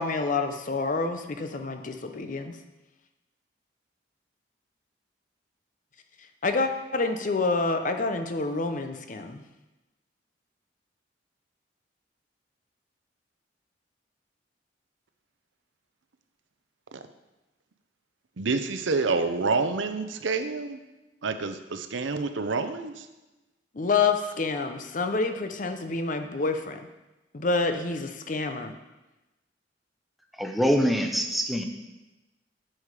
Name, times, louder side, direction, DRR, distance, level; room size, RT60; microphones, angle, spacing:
voice 1, 0.0-2.6 6.4-9.4 23.7-26.8 27.3-28.7, left 3 dB, 45° left, 7 dB, 0.7 m, -28 dB
voice 2, 18.4-20.8 21.2-23.1, right 4 dB, 85° right, 9 dB, 0.7 m, -28 dB
voice 3, 30.4-31.6, equal, ahead, 3 dB, 0.7 m, -24 dB
8.8 x 6.5 x 4.9 m, 1.0 s
head